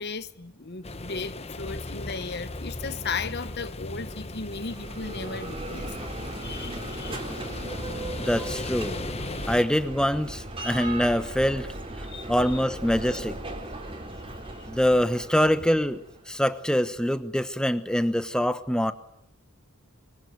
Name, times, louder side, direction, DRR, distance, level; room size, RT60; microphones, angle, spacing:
voice 1, 0.0-5.9 6.4-7.2 9.3-9.5 12.0-12.6 14.1-14.6, left 4 dB, 50° left, 1.0 m, -36 dB
sound 1, 0.8-9.6, left 2 dB, 30° left, 1.2 m, -37 dB
Bell, 4.4-16.3, right 1 dB, 25° right, 3.9 m, -37 dB
voice 2, 8.3-9.0 9.4-11.7 12.3-13.4 14.7-16.0 16.3-18.9, equal, 5° left, 1.0 m, -24 dB
24.5 x 24.0 x 9.3 m
head